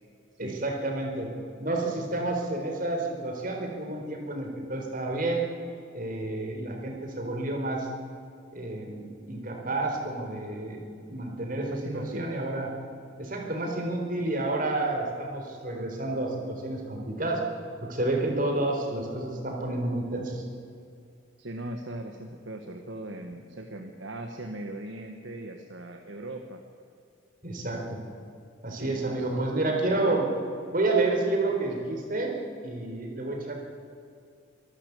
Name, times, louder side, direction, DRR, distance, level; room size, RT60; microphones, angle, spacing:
voice 1, 0.4-1.3 1.6-5.4 5.9-7.9 8.5-10.8 11.1-12.7 13.2-17.4 17.8-20.4 27.4-28.0 28.6-30.3 30.7-32.4 32.6-33.5, right 2 dB, 40° right, 2 dB, 4.1 m, -30 dB
voice 2, 11.7-12.3 21.4-26.6 28.7-30.3, right 1 dB, 65° right, 4 dB, 1.4 m, -39 dB
24.5 x 13.0 x 8.3 m, 2.4 s
head